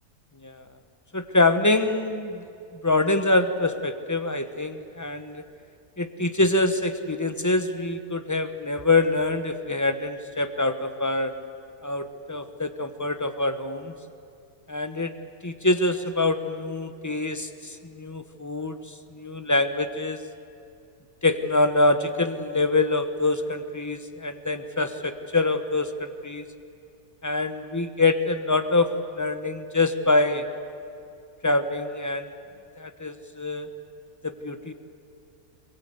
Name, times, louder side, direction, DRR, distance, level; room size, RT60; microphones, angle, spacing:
voice 1, 1.1-2.4 2.8-5.4 6.0-11.3 11.8-13.9 14.7-15.1 15.4-18.8 19.1-20.2 21.2-26.4 27.2-30.4 31.4-32.3 32.8-33.7 34.2-34.7, left 2 dB, 15° left, 9 dB, 0.9 m, -25 dB
22.5 x 22.5 x 8.2 m, 2.5 s
omnidirectional pair, 1.5 m